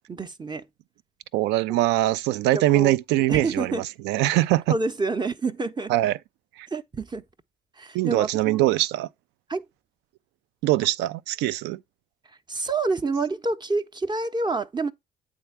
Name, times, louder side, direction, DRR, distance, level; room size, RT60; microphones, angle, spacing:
voice 1, 0.1-0.6 1.7-1.9 2.5-2.9 3.3-3.8 4.7-5.9 6.7-7.2 7.8-8.6 9.5-9.6 12.5-14.9, right 3 dB, 20° right, 0.7 m, -28 dB
voice 2, 1.3-4.8 5.9-6.2 6.6-6.7 7.9-9.1 10.6-11.8, right 16 dB, 65° right, 0.4 m, -22 dB
8.7 x 3.6 x 4.6 m
figure-of-eight pair, 45°, 19 cm